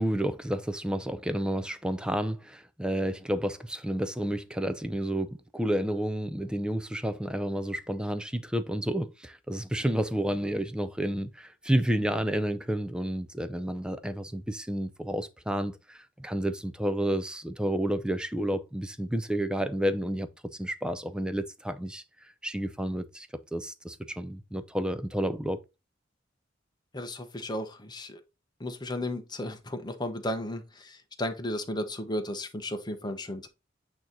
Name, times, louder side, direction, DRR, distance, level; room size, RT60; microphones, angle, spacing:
voice 1, 0.0-20.3 20.6-22.0 22.4-23.3 23.5-25.6, right 1 dB, 5° right, 0.5 m, -30 dB
voice 2, 26.9-28.2 28.6-33.5, left 1 dB, 20° left, 0.9 m, -34 dB
8.7 x 3.0 x 3.9 m
head